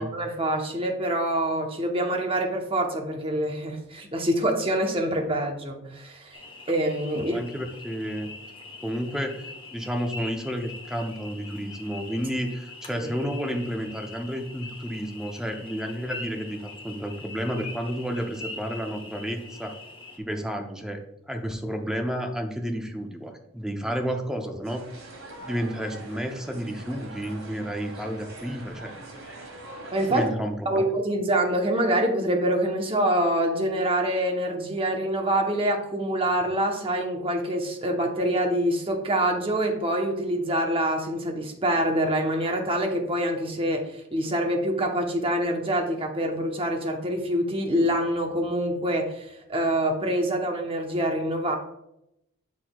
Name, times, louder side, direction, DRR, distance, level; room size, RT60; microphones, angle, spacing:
voice 1, 0.0-6.4 6.7-7.4 29.9-30.3 30.7-51.6, right 1 dB, 25° right, 2 dB, 0.9 m, -25 dB
sound 1, 6.3-20.2, left 3 dB, 25° left, 0.9 m, -43 dB
voice 2, 7.1-8.3 8.8-19.7 20.2-24.8 25.4-28.9 30.1-30.8, equal, 5° right, 3 dB, 0.6 m, -31 dB
sound 2, 24.6-30.3, right 2 dB, 85° right, 1.7 m, -43 dB
8.0 x 5.9 x 2.3 m, 0.82 s
head